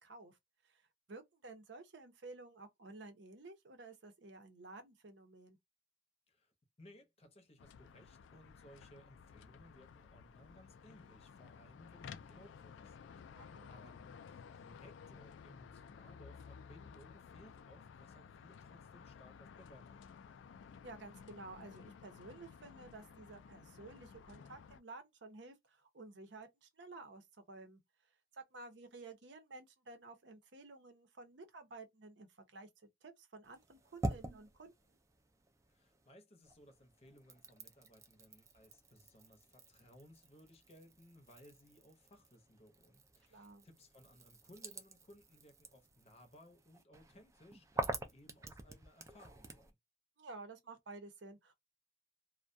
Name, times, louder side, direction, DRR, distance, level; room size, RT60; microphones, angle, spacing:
voice 1, 0.0-0.4 0.6-0.8 1.1-5.6 13.3-13.7 20.8-27.8 28.3-32.7 33.0-34.7 43.3-43.6 50.2-51.5, right 3 dB, 70° right, 0.7 m, -53 dB
voice 2, 6.3-20.4 35.7-49.8, equal, 35° left, 0.7 m, -62 dB
sound 1, 7.6-24.8, left 6 dB, 85° left, 0.3 m, -55 dB
sound 2, 33.4-36.1 36.4-49.7, right 2 dB, 15° right, 0.3 m, -47 dB
2.3 x 2.1 x 2.5 m
head